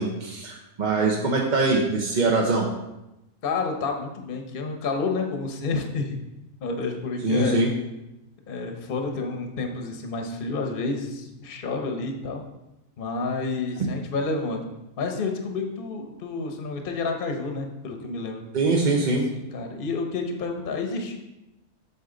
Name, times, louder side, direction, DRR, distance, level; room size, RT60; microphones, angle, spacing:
voice 1, 0.0-2.7 7.2-7.7 18.5-19.2, right 3 dB, 40° right, -1 dB, 0.8 m, -23 dB
voice 2, 3.4-6.1 6.6-7.6 8.5-12.4 13.0-14.6 15.0-18.4 19.3-21.2, left 3 dB, 40° left, 3 dB, 1.0 m, -29 dB
8.2 x 6.4 x 3.9 m, 0.93 s
omnidirectional pair, 1.5 m